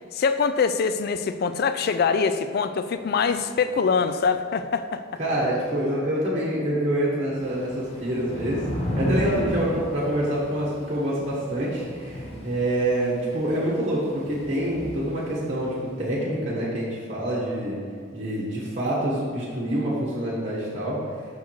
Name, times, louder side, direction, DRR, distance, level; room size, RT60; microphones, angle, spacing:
voice 1, 0.1-5.0, left 5 dB, 50° left, 10 dB, 0.3 m, -24 dB
voice 2, 5.2-8.6 9.0-17.8 18.1-21.0, right 1 dB, 35° right, -7 dB, 1.3 m, -26 dB
Thunder / Rain, 7.4-15.8, equal, 30° left, 0.9 m, -33 dB
6.4 x 4.7 x 4.6 m, 2.2 s
head